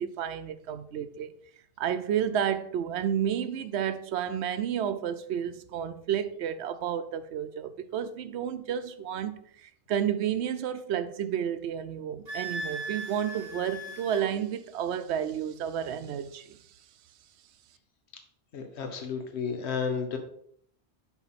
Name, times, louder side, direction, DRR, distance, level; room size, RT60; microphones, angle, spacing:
voice 1, 0.0-1.3 1.8-9.3 9.6-16.6, right 9 dB, 90° right, 0.9 m, -31 dB
Wind instrument woodwind instrument, 12.3-14.3, right 2 dB, 40° right, 1.4 m, -38 dB
voice 2, 18.5-20.2, left 6 dB, 85° left, 1.2 m, -32 dB
7.1 x 4.4 x 4.1 m
omnidirectional pair, 1.1 m